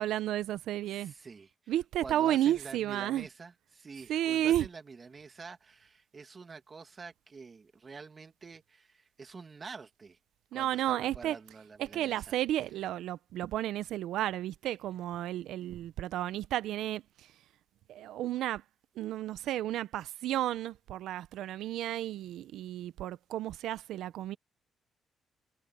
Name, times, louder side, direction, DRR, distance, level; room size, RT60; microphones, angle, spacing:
voice 1, 0.0-1.1 1.7-3.3 4.1-4.7 10.5-11.4 11.8-17.3 17.9-18.6 19.0-24.4, right 12 dB, 85° right, 0.6 m, -32 dB
voice 2, 0.9-1.7 2.0-10.2 10.5-12.4, right 4 dB, 35° right, 2.3 m, -47 dB
cardioid pair, 90°, 0 cm